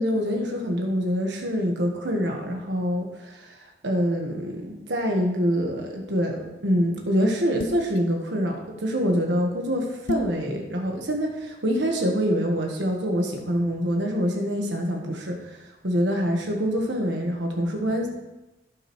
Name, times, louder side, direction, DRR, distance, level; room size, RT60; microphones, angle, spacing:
voice 1, 0.0-18.1, equal, 90° right, 1 dB, 1.3 m, -25 dB
sound 1, 7.6-8.0 10.1-10.4, left 1 dB, 75° left, 0.6 m, -30 dB
16.0 x 6.4 x 3.1 m, 1.0 s
head